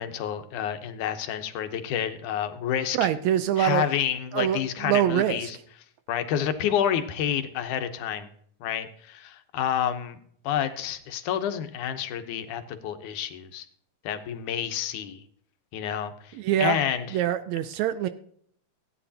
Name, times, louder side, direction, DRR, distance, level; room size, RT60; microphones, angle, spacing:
voice 1, 0.0-3.1 3.6-5.6 6.1-8.3 8.6-10.2 10.4-13.7 14.0-15.2 15.7-17.2, left 9 dB, 80° left, 8 dB, 2.4 m, -29 dB
voice 2, 2.9-3.8 4.3-5.5 16.3-16.8 17.1-18.1, right 11 dB, 75° right, 12 dB, 1.7 m, -24 dB
16.0 x 9.4 x 2.8 m, 0.62 s
omnidirectional pair, 3.6 m